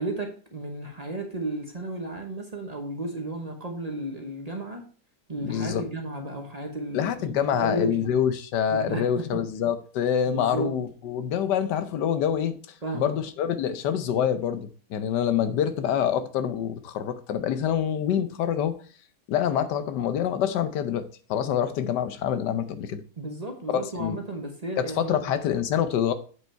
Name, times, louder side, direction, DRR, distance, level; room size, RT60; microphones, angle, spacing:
voice 1, 0.0-4.8 5.3-8.0 8.7-9.4 10.3-10.8 12.8-13.1 23.2-25.4, right 1 dB, 25° right, 1.0 m, -33 dB
voice 2, 5.4-5.8 6.9-12.6 12.9-18.7 19.3-23.0 23.7-24.2 24.8-26.1, left 9 dB, 90° left, 1.4 m, -26 dB
8.0 x 5.3 x 4.4 m
omnidirectional pair, 1.8 m